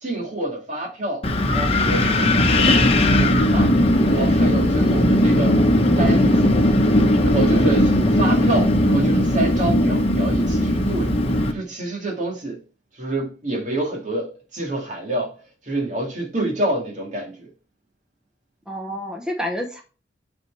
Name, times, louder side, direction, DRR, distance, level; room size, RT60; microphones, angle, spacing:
voice 1, 0.0-3.7 4.0-5.6 6.0-6.5 7.2-11.1 11.5-12.6 13.0-15.3 15.7-17.5, right 1 dB, 45° right, 2.2 m, -27 dB
Wind, 1.2-11.5, left 1 dB, 35° left, 1.1 m, -18 dB
voice 2, 18.7-19.8, equal, 5° right, 0.9 m, -29 dB
9.0 x 4.5 x 4.6 m
head